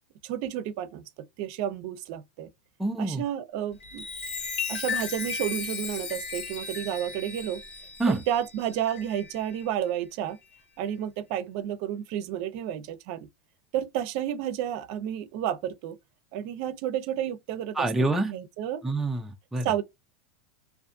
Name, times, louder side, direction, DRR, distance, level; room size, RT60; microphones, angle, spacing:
voice 1, 0.2-1.0 1.4-2.5 3.0-4.0 4.7-7.6 8.1-10.4 10.8-13.3 13.7-16.0 16.3-17.8 18.1-19.0 19.6-19.8, right 10 dB, 55° right, 0.6 m, -31 dB
voice 2, 2.8-3.2 8.0-8.2 17.8-18.3 18.8-19.7, right 2 dB, 5° right, 0.4 m, -26 dB
Chime, 3.7-9.7 10.3-10.6, left 5 dB, 65° left, 1.3 m, -36 dB
2.5 x 2.4 x 2.5 m
supercardioid pair, 140°, 5 cm